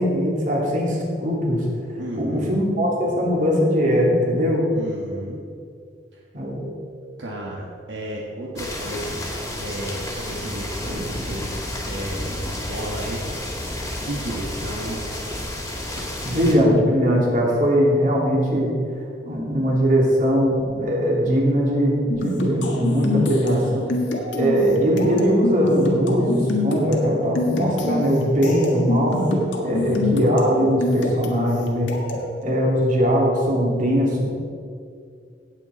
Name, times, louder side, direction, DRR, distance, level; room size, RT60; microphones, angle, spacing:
voice 1, 0.0-1.6 2.2-4.6 6.3-6.7 16.2-18.7 19.2-23.9 24.4-29.2 29.6-31.9 32.4-34.2, equal, 45° right, -3 dB, 2.9 m, -20 dB
voice 2, 2.0-2.5 4.7-5.4 6.1-6.2 7.2-9.1 9.6-11.5 11.8-13.3 14.0-15.0 29.6-30.1, right 1 dB, 75° right, -3 dB, 1.4 m, -33 dB
sound 1, 8.6-16.5, left 1 dB, 20° left, 2.0 m, -31 dB
sound 2, 22.1-32.3, left 2 dB, 85° left, 1.6 m, -26 dB
17.0 x 7.8 x 4.2 m, 2.3 s
head